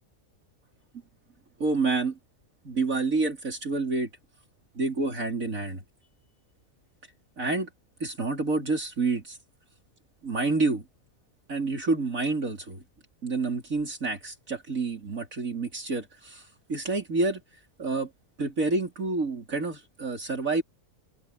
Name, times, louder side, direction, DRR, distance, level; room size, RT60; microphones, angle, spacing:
voice 1, 1.6-2.2 2.6-4.1 4.7-5.8 7.4-7.7 8.0-9.4 10.2-10.8 11.5-12.8 13.2-17.4 17.8-18.1 18.4-20.6, right 3 dB, 70° right, 4.3 m, -28 dB
omnidirectional pair, 1.5 m